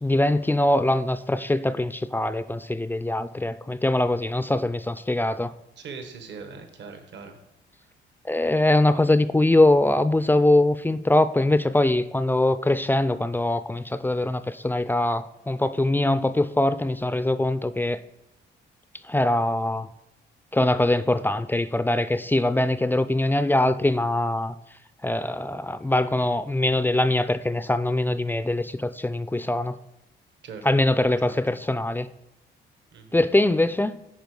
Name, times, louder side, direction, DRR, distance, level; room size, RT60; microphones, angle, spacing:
voice 1, 0.0-5.5 8.3-18.0 19.1-19.9 20.5-24.5 25.0-29.7 30.6-32.1 33.1-34.0, left 1 dB, 10° left, 13 dB, 0.3 m, -22 dB
voice 2, 5.8-7.4 30.4-30.6 31.2-31.3 32.9-33.2, right 5 dB, 65° right, 6 dB, 1.1 m, -40 dB
10.5 x 4.3 x 4.7 m, 0.88 s
cardioid pair, 90°, 20 cm